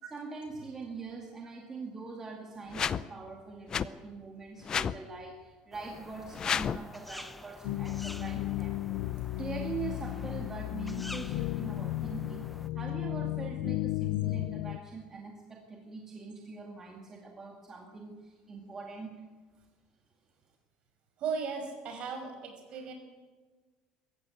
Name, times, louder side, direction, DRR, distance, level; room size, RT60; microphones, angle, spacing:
voice 1, 0.1-8.8 9.4-19.1, right 4 dB, 20° right, 1 dB, 2.2 m, -43 dB
sound 1, 2.7-3.0 3.7-3.9 4.6-5.0 6.3-6.8, left 7 dB, 30° left, 0.6 m, -30 dB
sound 2, 5.7-12.7, left 1 dB, 5° left, 0.9 m, -48 dB
sound 3, 7.6-14.8, left 18 dB, 70° left, 0.5 m, -34 dB
voice 2, 21.2-22.9, right 5 dB, 45° right, 4 dB, 5.7 m, -37 dB
23.0 x 14.5 x 9.1 m, 1.4 s
cardioid pair, 160°, 2 cm